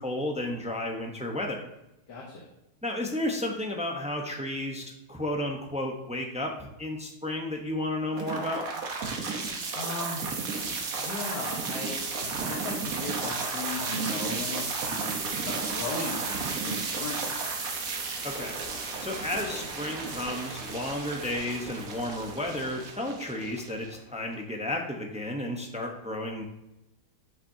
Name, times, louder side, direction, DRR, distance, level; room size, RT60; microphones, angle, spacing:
voice 1, 0.0-1.7 2.8-8.6 18.2-18.6 19.0-26.4, left 1 dB, 10° right, 1 dB, 0.5 m, -32 dB
voice 2, 2.1-2.5 9.7-10.2 11.0-17.4, left 2 dB, 80° left, -3 dB, 1.9 m, -37 dB
sound 1, 8.1-24.2, right 4 dB, 60° right, 1.5 m, -33 dB
9.2 x 5.8 x 2.8 m, 0.91 s
omnidirectional pair, 1.8 m